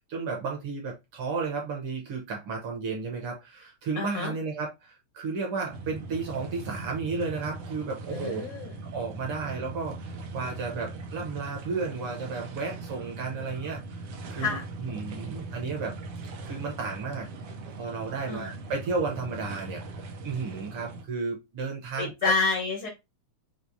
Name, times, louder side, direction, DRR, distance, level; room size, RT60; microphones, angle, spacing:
voice 1, 0.1-8.4 8.8-15.9 16.4-17.3 17.8-22.3, right 4 dB, 65° right, 1.4 m, -33 dB
voice 2, 3.9-4.3 8.1-8.7 14.4-14.6 18.3-18.5 22.0-22.9, left 4 dB, 85° left, 1.1 m, -28 dB
sound 1, 5.7-21.1, right 3 dB, 90° right, 1.2 m, -40 dB
5.9 x 2.0 x 2.6 m
omnidirectional pair, 3.5 m